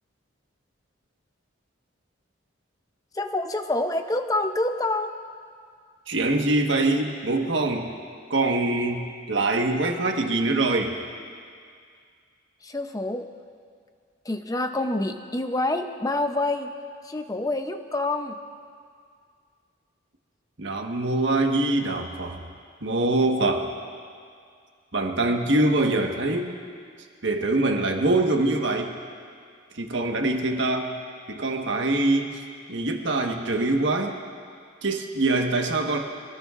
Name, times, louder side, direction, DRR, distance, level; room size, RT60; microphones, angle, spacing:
voice 1, 3.1-5.1 12.6-13.3 14.2-16.7 17.0-18.4 35.3-35.4, left 2 dB, 15° left, 6 dB, 0.6 m, -27 dB
voice 2, 6.1-7.9 8.3-11.0 20.6-22.4 22.8-23.7 24.9-26.5 27.2-28.9 29.7-31.0 31.3-32.4 32.7-34.2 34.8-36.0, right 2 dB, 65° right, 2 dB, 1.4 m, -24 dB
26.0 x 18.5 x 2.5 m, 2.2 s
head